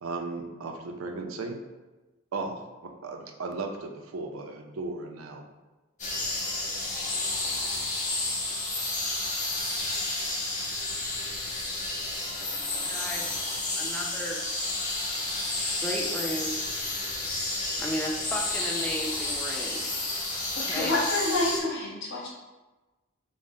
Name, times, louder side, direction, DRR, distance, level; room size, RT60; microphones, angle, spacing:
voice 1, 0.0-1.6 2.3-5.4, right 3 dB, 85° right, 3 dB, 0.5 m, -36 dB
sound 1, 6.0-21.6, left 2 dB, 40° left, 0.9 m, -31 dB
voice 2, 12.7-13.4 13.8-14.4 15.8-16.6 17.8-19.9 20.6-20.9, equal, 5° left, -2 dB, 0.5 m, -34 dB
voice 3, 20.5-22.3, left 2 dB, 60° left, -5 dB, 1.1 m, -28 dB
5.3 x 2.1 x 3.7 m, 1.1 s
head